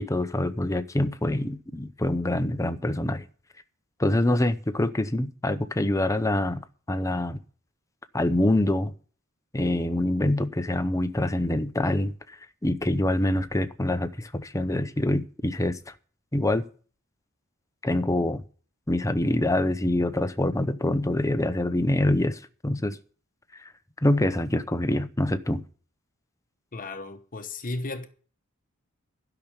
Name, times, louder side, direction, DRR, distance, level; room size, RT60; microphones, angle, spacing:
voice 1, 0.0-3.2 4.0-6.6 6.9-7.4 8.1-8.9 9.5-12.1 12.6-15.8 16.3-16.6 17.8-18.4 18.9-23.0 24.0-25.6, left 1 dB, 15° left, 0.7 m, -25 dB
voice 2, 26.7-28.1, left 2 dB, 40° left, 1.0 m, -34 dB
12.0 x 6.0 x 9.0 m
head